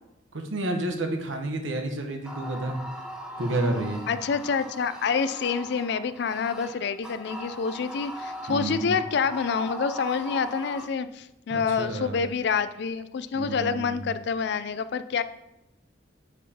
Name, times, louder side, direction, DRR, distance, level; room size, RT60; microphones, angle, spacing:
voice 1, 0.3-2.8 3.4-4.0 8.5-8.9 11.5-12.2 13.3-14.1, right 2 dB, 80° right, 4 dB, 0.9 m, -30 dB
sound 1, 2.2-10.9, equal, 5° right, 0.7 m, -40 dB
voice 2, 4.1-15.2, left 5 dB, 60° left, 13 dB, 0.4 m, -27 dB
9.9 x 4.6 x 2.8 m, 0.89 s
head